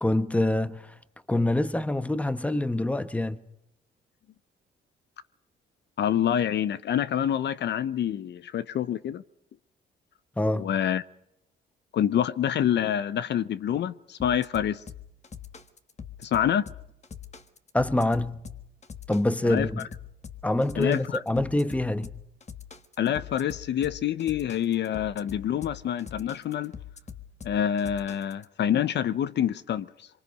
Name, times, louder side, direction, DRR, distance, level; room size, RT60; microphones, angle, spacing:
voice 1, 0.0-0.9 1.3-3.4 10.4-10.7 17.7-18.4 19.1-19.9 20.4-22.1, left 1 dB, 5° left, 1.1 m, -25 dB
voice 2, 6.0-9.2 10.5-11.0 11.9-14.8 16.2-16.6 19.4-19.7 20.8-21.2 23.0-26.7 27.4-30.1, left 10 dB, 60° left, 0.7 m, -27 dB
sound 1, 14.2-28.4, left 7 dB, 35° left, 1.5 m, -43 dB
24.0 x 24.0 x 5.4 m
cardioid pair, 90°, 20 cm